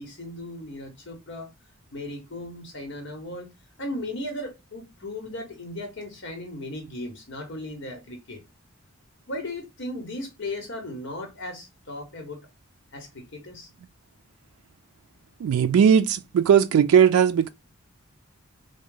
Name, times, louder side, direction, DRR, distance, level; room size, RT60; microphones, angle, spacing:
voice 1, 0.0-1.5 1.9-3.5 3.8-8.4 9.3-12.4 12.9-13.7, left 1 dB, 55° left, 1.0 m, -36 dB
voice 2, 15.4-17.5, right 8 dB, 90° right, 0.3 m, -18 dB
3.6 x 2.1 x 3.7 m
head